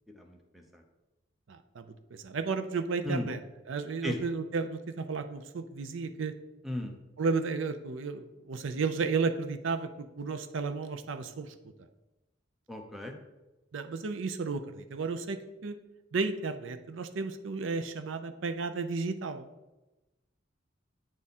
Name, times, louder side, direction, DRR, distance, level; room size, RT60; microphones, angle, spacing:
voice 1, 0.1-0.8 3.0-3.3 4.0-4.2 6.6-6.9 12.7-13.1, left 1 dB, ahead, 2 dB, 0.8 m, -36 dB
voice 2, 1.5-3.4 3.7-6.3 7.2-11.5 13.7-15.8 16.1-19.5, right 4 dB, 85° right, 10 dB, 0.5 m, -33 dB
8.9 x 3.6 x 4.2 m, 1.0 s
head